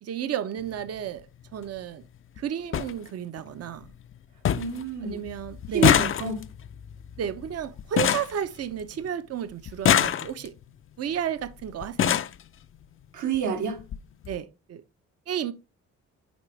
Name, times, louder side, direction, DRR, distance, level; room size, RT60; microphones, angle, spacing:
voice 1, 0.0-1.3 1.5-2.0 2.4-3.9 5.0-6.0 7.2-10.5 11.0-12.2 14.3-14.8 15.3-15.5, right 9 dB, 55° right, 0.8 m, -32 dB
sound 1, 0.6-0.8 2.0-2.1 2.4-2.5 2.7-2.9 3.4-3.9 4.1-4.2 4.4-4.8 5.1-9.1 9.7-10.6 11.4-11.5 11.8-12.4 13.3-13.4 13.8-14.0 14.2-14.4, left 10 dB, 45° left, 0.5 m, -25 dB
voice 2, 4.6-5.2 5.7-6.4 13.1-13.8, right 7 dB, 80° right, 1.8 m, -28 dB
9.5 x 3.4 x 3.2 m
cardioid pair, 90°, 30 cm